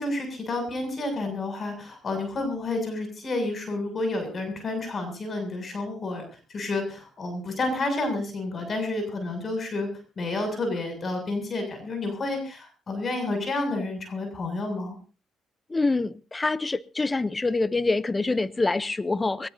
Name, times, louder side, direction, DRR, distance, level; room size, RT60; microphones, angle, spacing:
voice 1, 0.0-6.2 6.5-9.9 10.2-15.0, left 2 dB, 45° left, 7.1 m, -30 dB
voice 2, 15.7-19.5, left 3 dB, 20° left, 0.8 m, -25 dB
22.5 x 18.5 x 2.8 m
cardioid pair, 90°, 0 cm